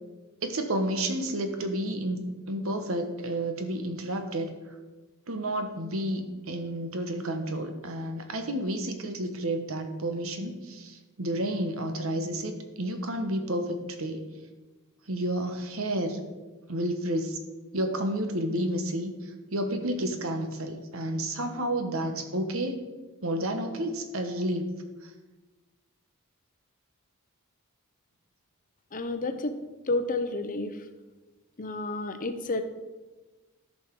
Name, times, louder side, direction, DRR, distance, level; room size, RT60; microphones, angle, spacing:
voice 1, 0.4-2.2 2.5-4.5 5.3-14.2 15.1-16.2 16.7-17.4 17.7-22.8 23.2-24.7 25.0-25.1, right 1 dB, 70° right, 6 dB, 1.2 m, -31 dB
voice 2, 28.9-29.5 29.9-30.8 31.6-32.6, left 2 dB, 40° left, 9 dB, 0.7 m, -30 dB
13.5 x 5.5 x 4.8 m, 1.2 s
head